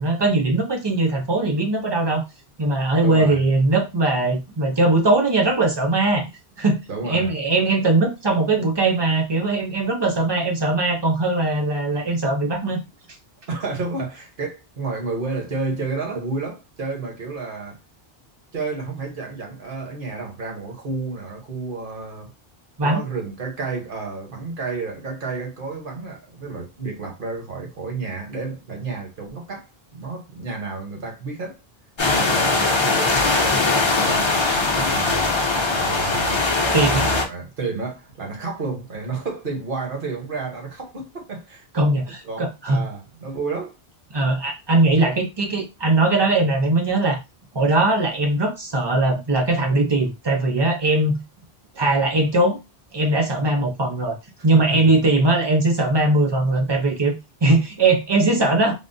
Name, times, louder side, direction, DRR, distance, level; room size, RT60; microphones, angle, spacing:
voice 1, 0.0-2.2 2.6-6.2 6.6-6.8 7.0-12.8 22.8-23.0 36.7-37.1 41.7-42.8 44.1-47.2 47.5-51.2 51.8-52.6 52.9-54.2 54.4-57.1 57.4-58.7, right 2 dB, 30° right, 0.6 m, -20 dB
voice 2, 2.9-3.4 6.9-7.3 13.5-17.8 18.5-22.3 22.8-31.6 32.0-33.7 34.0-35.3 35.7-36.5 36.9-41.6 42.2-43.7 54.7-54.9 57.5-57.6, right 4 dB, 60° right, 1.1 m, -31 dB
sound 1, 32.0-37.3, left 3 dB, 35° left, 0.5 m, -20 dB
3.5 x 2.1 x 2.6 m
omnidirectional pair, 1.0 m